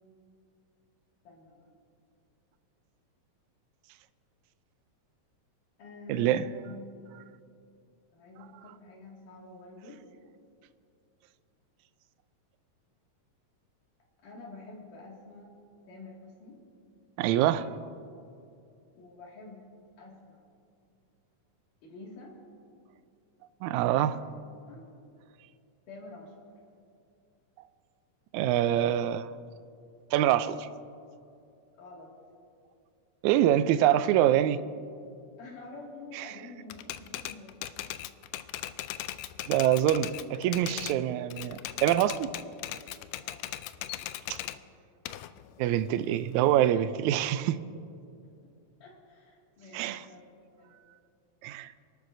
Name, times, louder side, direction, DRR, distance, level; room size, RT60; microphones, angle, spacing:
voice 1, 1.2-1.7 5.8-7.1 8.1-10.0 14.2-15.6 15.9-16.6 19.0-19.7 20.0-20.4 21.8-22.4 23.7-24.3 24.7-24.9 25.9-26.5 31.8-32.1 35.4-37.5 43.2-43.5 44.1-44.6 48.2-48.3 48.8-50.7, left 2 dB, 75° left, -2 dB, 3.7 m, -48 dB
voice 2, 6.1-6.5 17.2-17.7 23.6-24.1 28.3-29.3 30.1-30.7 33.2-34.6 36.1-36.3 39.5-42.3 44.3-44.4 45.6-47.6 49.7-50.0 51.4-51.7, right 12 dB, 80° right, 12 dB, 1.7 m, -25 dB
Typewriter, 36.7-41.0 41.3-44.6 45.1-46.7, left 13 dB, 90° left, 2.2 m, -39 dB
28.5 x 12.5 x 2.6 m, 2.5 s
omnidirectional pair, 3.7 m